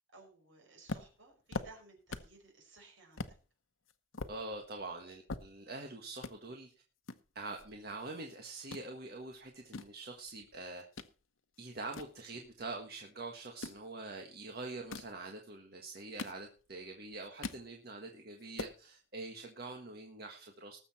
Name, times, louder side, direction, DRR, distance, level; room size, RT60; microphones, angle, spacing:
voice 1, 0.1-3.4, right 3 dB, 75° right, 3 dB, 5.0 m, -58 dB
sound 1, 0.9-2.4 2.8-2.9 3.2-3.4 3.9-5.9 6.2-6.3 7.1-8.2 8.5-8.9 9.4-11.1 11.5-12.8 13.4-13.8 14.7-15.2 15.8-16.8 17.1-17.7 18.1-18.2 18.4-18.8, left 3 dB, 85° left, 1.0 m, -43 dB
voice 2, 4.3-6.7 7.3-10.9 11.6-20.8, right 2 dB, 50° right, 2 dB, 1.6 m, -45 dB
19.5 x 7.2 x 4.3 m, 0.36 s
head